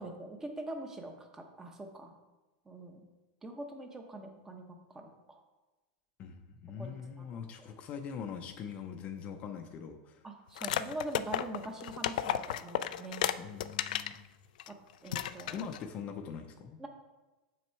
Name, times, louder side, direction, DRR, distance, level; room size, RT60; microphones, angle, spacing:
voice 1, 0.0-2.1 2.7-3.0 3.4-4.6 4.9-5.4 6.8-7.4 10.2-13.2 14.7-14.8 15.0-15.7 16.8-16.9, right 2 dB, 10° right, 4 dB, 0.9 m, -43 dB
voice 2, 6.2-10.3 13.4-14.3 15.5-16.8, left 7 dB, 30° left, 6 dB, 0.6 m, -42 dB
sound 1, 10.6-14.2 14.6-14.7 15.1-15.8, left 11 dB, 75° left, 0.4 m, -34 dB
7.2 x 6.1 x 4.5 m, 1.1 s
supercardioid pair, 155°, 4 cm